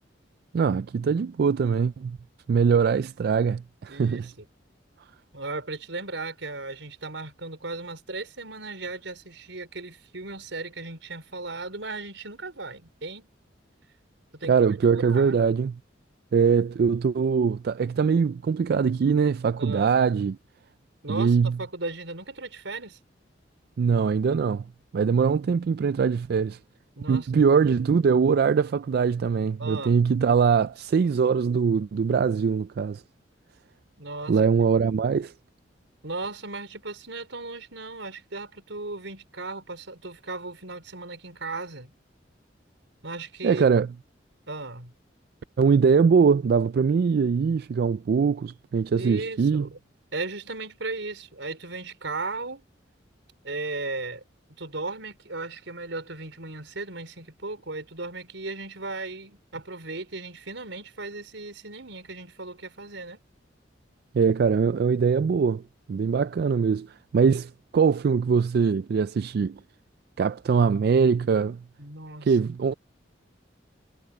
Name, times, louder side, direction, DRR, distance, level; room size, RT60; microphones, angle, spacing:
voice 1, 0.5-2.2 2.5-4.3 14.5-15.8 16.3-20.4 21.1-21.5 23.8-24.6 24.9-26.6 27.1-33.0 34.3-35.3 43.4-43.9 45.6-49.7 64.1-65.6 65.9-66.9 67.1-69.6 70.2-71.6 72.2-72.7, right 6 dB, 55° right, 0.3 m, -22 dB
voice 2, 3.9-4.5 5.3-13.3 14.3-15.4 19.6-20.0 21.0-23.0 27.0-27.3 29.6-30.0 34.0-34.5 36.0-41.9 43.0-43.7 44.5-44.9 49.0-49.8 50.1-52.6 53.4-54.2 54.6-63.2 71.8-72.4, right 3 dB, 85° right, 5.0 m, -36 dB
head